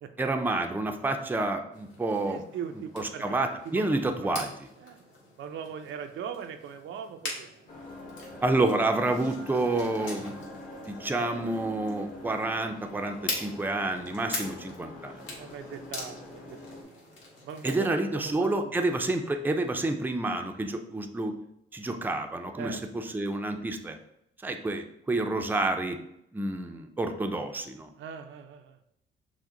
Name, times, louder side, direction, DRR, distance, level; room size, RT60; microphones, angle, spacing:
voice 1, 0.2-2.4 2.9-4.5 8.4-10.6 10.9-15.1 17.6-21.3 21.7-24.0 24.4-26.0 26.3-27.9, right 2 dB, 10° right, 5 dB, 0.5 m, -29 dB
sound 1, 1.7-17.8, left 2 dB, 75° left, 1.6 m, -43 dB
voice 2, 2.2-3.2 4.2-4.5 4.8-5.0 5.4-7.6 14.2-14.5 15.4-17.0 17.4-18.8 22.6-22.8 28.0-28.8, right 7 dB, 75° right, 7 dB, 0.5 m, -40 dB
sound 2, 7.7-16.8, left 2 dB, 40° left, 1.2 m, -44 dB
6.0 x 2.1 x 3.7 m, 0.77 s
cardioid pair, 90°, 20 cm